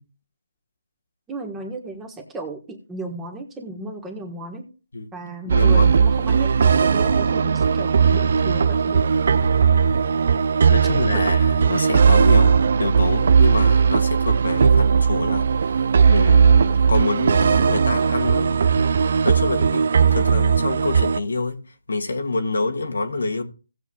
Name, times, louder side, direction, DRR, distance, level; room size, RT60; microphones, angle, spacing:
voice 1, 1.3-4.7 5.1-9.0 11.1-11.2, right 2 dB, 10° right, 1.4 m, -34 dB
voice 2, 5.5-5.9 9.3-9.5 10.7-18.6 19.2-21.6 21.9-23.4, left 3 dB, 85° left, 1.8 m, -27 dB
sound 1, 5.5-21.2, right 6 dB, 55° right, 0.3 m, -17 dB
17.5 x 7.1 x 2.4 m
hypercardioid pair, 165°, 0 cm